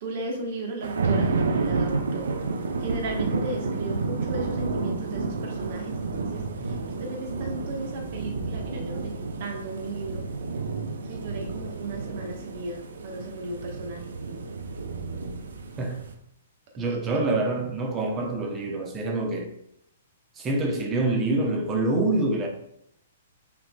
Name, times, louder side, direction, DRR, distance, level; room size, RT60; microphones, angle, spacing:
voice 1, 0.0-2.3 2.8-9.1 9.4-10.3 11.1-14.1 16.9-17.0, right 2 dB, 50° right, 1.3 m, -35 dB
sound 1, 0.8-16.1, right 3 dB, 70° right, 0.7 m, -30 dB
voice 2, 16.8-19.5 20.4-22.5, right 2 dB, 20° right, 0.9 m, -26 dB
5.6 x 3.7 x 2.3 m
figure-of-eight pair, 115°, 0 cm